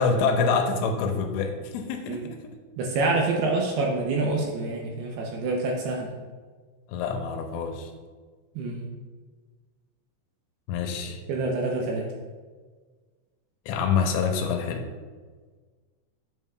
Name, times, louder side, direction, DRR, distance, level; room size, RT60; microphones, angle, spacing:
voice 1, 0.0-2.4 6.9-7.9 10.7-11.2 13.7-14.9, left 5 dB, 85° left, 4 dB, 2.8 m, -26 dB
voice 2, 2.8-6.1 8.6-8.9 11.3-12.1, right 3 dB, 80° right, 0 dB, 2.4 m, -27 dB
8.3 x 7.1 x 2.3 m, 1.5 s
omnidirectional pair, 5.1 m